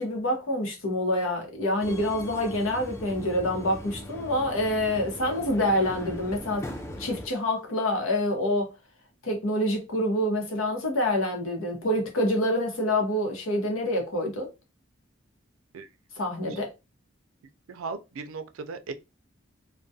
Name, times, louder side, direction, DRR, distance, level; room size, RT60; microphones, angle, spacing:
voice 1, 0.0-6.7 7.0-8.7 9.2-14.5 16.2-16.7, left 1 dB, 85° left, 0.9 m, -27 dB
Subway metro underground, 1.8-7.3, left 1 dB, 15° left, 0.3 m, -40 dB
voice 2, 17.7-18.9, right 4 dB, 85° right, 0.4 m, -37 dB
2.3 x 2.2 x 2.6 m
head